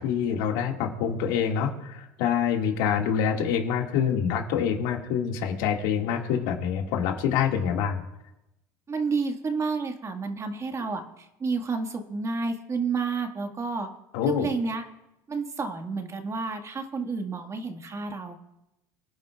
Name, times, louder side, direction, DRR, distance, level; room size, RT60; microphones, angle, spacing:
voice 1, 0.0-8.0 14.1-14.5, left 8 dB, 75° left, 2 dB, 2.0 m, -26 dB
voice 2, 8.9-13.9 14.3-14.8 15.3-18.4, right 4 dB, 30° right, 5 dB, 1.7 m, -30 dB
24.0 x 10.0 x 2.4 m, 0.90 s
supercardioid pair, 90°, 10 cm